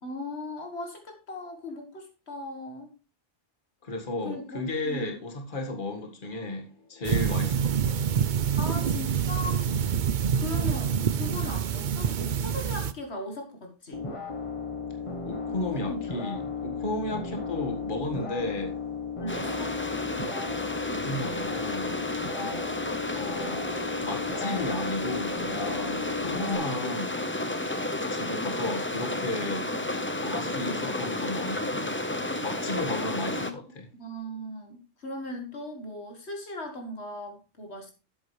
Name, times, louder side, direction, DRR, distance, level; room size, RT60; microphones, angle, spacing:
voice 1, 0.0-2.9 4.3-5.2 8.6-10.1 10.4-14.0 15.5-16.1 17.1-17.2 19.2-19.7 22.4-22.6 26.3-26.4 33.3-33.5 34.0-37.9, left 1 dB, 70° left, 1.8 m, -38 dB
voice 2, 3.8-8.0 15.2-18.7 20.9-22.0 23.1-23.7 24.0-27.2 28.1-29.7 30.1-33.9, left 2 dB, 45° left, 1.9 m, -34 dB
sound 1, 7.1-12.9, right 7 dB, 50° right, 0.7 m, -26 dB
sound 2, 13.9-26.6, left 5 dB, 30° left, 1.2 m, -35 dB
sound 3, 19.3-33.5, left 1 dB, 10° left, 0.7 m, -32 dB
12.0 x 8.1 x 3.2 m
omnidirectional pair, 1.2 m